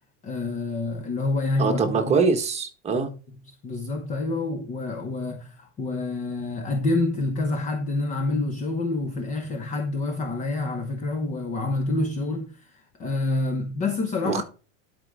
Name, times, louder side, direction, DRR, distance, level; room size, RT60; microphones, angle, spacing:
voice 1, 0.2-2.2 2.9-3.1 3.5-14.4, left 2 dB, 20° left, 1.0 m, -27 dB
voice 2, 1.6-3.1 14.2-14.4, right 4 dB, 15° right, 1.5 m, -23 dB
12.0 x 5.3 x 3.7 m
supercardioid pair, 160°, 39 cm